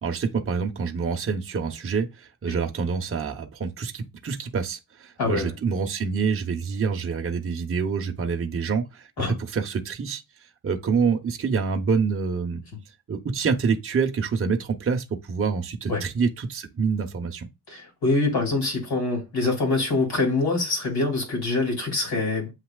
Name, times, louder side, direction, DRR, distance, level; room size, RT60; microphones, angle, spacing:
voice 1, 0.0-10.2 10.6-12.6 13.1-17.5, right 5 dB, 35° right, 0.8 m, -26 dB
voice 2, 5.2-5.5 9.2-9.3 15.9-16.0 17.7-22.5, left 3 dB, 90° left, 2.8 m, -24 dB
8.1 x 2.8 x 2.3 m
wide cardioid pair, 125°, 37 cm